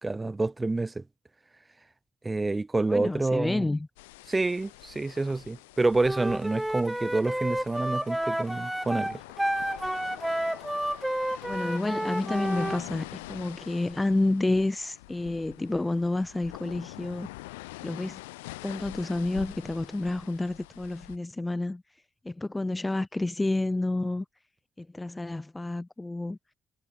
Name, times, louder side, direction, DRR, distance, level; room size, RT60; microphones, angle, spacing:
voice 1, 0.0-1.0 2.2-3.6 4.3-9.2, right 3 dB, 25° right, 3.0 m, -28 dB
voice 2, 2.9-3.9 11.5-17.3 17.8-18.2 18.6-21.8 22.2-24.2 24.8-26.4, left 2 dB, 20° left, 0.9 m, -29 dB
sound 1, 4.0-21.2, left 22 dB, 90° left, 4.4 m, -45 dB
Wind instrument woodwind instrument, 6.0-12.8, right 1 dB, 5° right, 1.1 m, -31 dB
hypercardioid pair, 50°, 0 cm